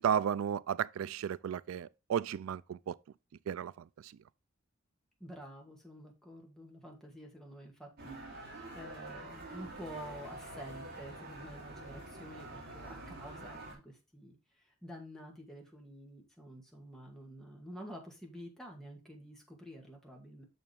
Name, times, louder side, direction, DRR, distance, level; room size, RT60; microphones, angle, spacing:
voice 1, 0.0-3.0 3.5-3.7 4.0-4.1, right 8 dB, 90° right, 0.3 m, -33 dB
voice 2, 5.2-20.4, equal, ahead, 2.1 m, -49 dB
sound 1, 8.0-13.7, right 2 dB, 50° right, 3.5 m, -46 dB
6.8 x 6.7 x 3.4 m
head